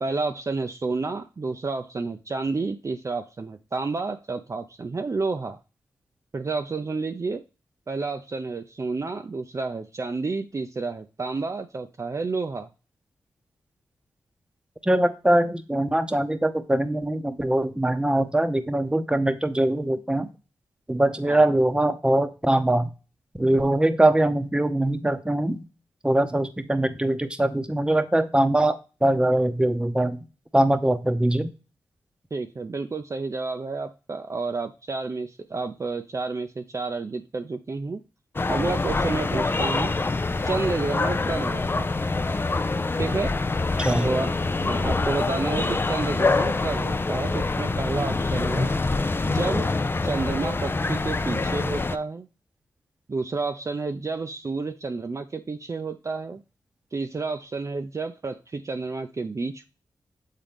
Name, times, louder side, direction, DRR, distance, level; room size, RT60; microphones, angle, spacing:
voice 1, 0.0-5.6 6.3-7.4 7.9-12.7 21.3-21.4 32.3-38.0 38.5-39.9 40.4-42.0 43.0-43.4 44.0-48.7 49.2-49.7 50.0-52.3 53.1-56.4 56.9-59.6, right 3 dB, 40° right, 5 dB, 0.5 m, -30 dB
voice 2, 14.8-20.3 20.9-22.9 23.4-25.6 26.0-30.2 30.5-31.5 43.8-44.1, right 1 dB, 10° right, 9 dB, 0.8 m, -22 dB
sound 1, 38.4-52.0, left 3 dB, 30° left, 0.4 m, -25 dB
7.4 x 3.7 x 3.5 m, 0.32 s
supercardioid pair, 40°, 8 cm